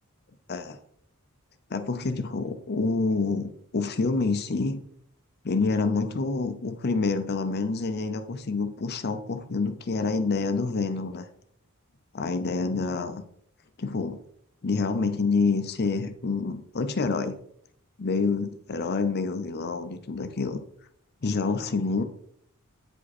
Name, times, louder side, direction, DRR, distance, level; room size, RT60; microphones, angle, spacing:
voice 1, 1.7-4.8 5.4-11.3 12.1-13.2 13.8-14.2 14.6-17.4 18.0-20.6 21.2-22.0, left 4 dB, 50° left, 9 dB, 0.6 m, -27 dB
8.7 x 5.1 x 4.2 m, 0.67 s
head